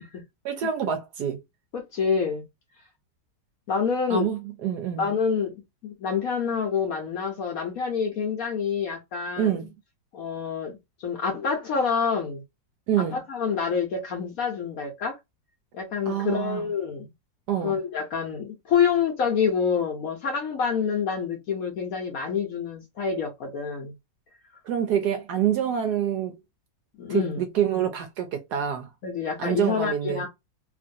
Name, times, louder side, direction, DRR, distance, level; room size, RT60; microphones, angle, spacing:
voice 1, 0.4-1.4 4.1-5.1 9.4-9.7 12.9-13.2 16.1-16.7 17.5-17.8 24.6-26.3 27.1-28.9 29.4-30.2, right 9 dB, 70° right, 1.0 m, -26 dB
voice 2, 1.7-2.4 3.7-4.3 5.0-5.5 5.8-9.6 10.1-12.4 13.0-15.2 15.7-17.1 17.6-23.9 27.0-27.4 29.0-30.3, left 6 dB, 60° left, 0.9 m, -27 dB
3.0 x 2.5 x 2.5 m
omnidirectional pair, 2.1 m